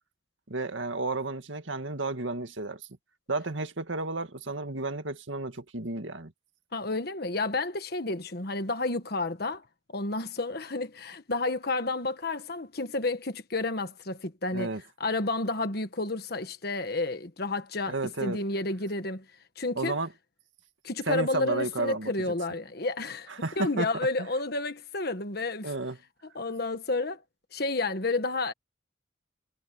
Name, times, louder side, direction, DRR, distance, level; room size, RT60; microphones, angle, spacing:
voice 1, 0.5-2.8 3.3-6.3 14.5-14.8 17.9-18.4 19.8-20.1 21.1-22.1 23.4-23.9 25.6-26.0, right 2 dB, 85° right, 2.1 m, -32 dB
voice 2, 6.7-9.6 9.9-14.7 15.0-17.9 18.2-19.2 19.6-20.0 20.8-25.7 26.3-27.2 27.5-28.5, left 2 dB, 55° left, 1.4 m, -31 dB
head